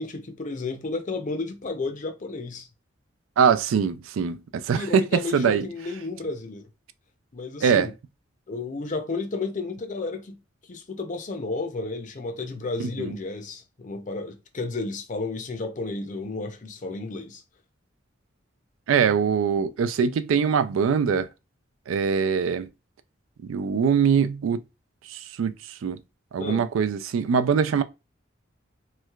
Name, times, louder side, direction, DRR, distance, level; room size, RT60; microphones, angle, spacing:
voice 1, 0.0-2.7 4.8-6.7 7.3-7.9 8.5-10.4 10.7-17.4 26.4-26.7, left 3 dB, 40° left, 0.5 m, -32 dB
voice 2, 3.4-5.6 7.6-7.9 12.8-13.1 18.9-21.3 21.9-22.7 23.4-24.6 25.1-25.5 25.8-26.0 26.3-27.8, right 6 dB, 85° right, 0.3 m, -23 dB
3.2 x 3.1 x 2.3 m
head